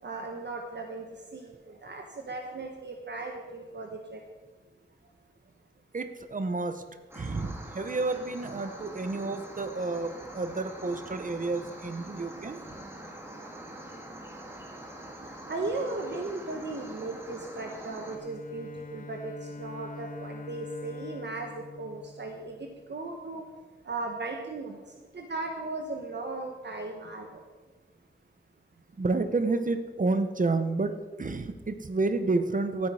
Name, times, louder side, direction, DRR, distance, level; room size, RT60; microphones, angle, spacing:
voice 1, 0.0-4.2 8.6-8.8 15.2-22.6 22.9-23.4 23.8-24.8 25.1-27.4, right 2 dB, 60° right, 3 dB, 1.2 m, -37 dB
voice 2, 5.9-6.8 7.1-12.6 29.0-32.9, right 3 dB, 40° right, 9 dB, 1.0 m, -30 dB
sound 1, 7.1-18.2, right 1 dB, 10° right, 2.1 m, -44 dB
Bowed string instrument, 18.1-22.9, left 3 dB, 40° left, 0.6 m, -44 dB
14.0 x 8.9 x 4.9 m, 1.3 s
wide cardioid pair, 110°, 20 cm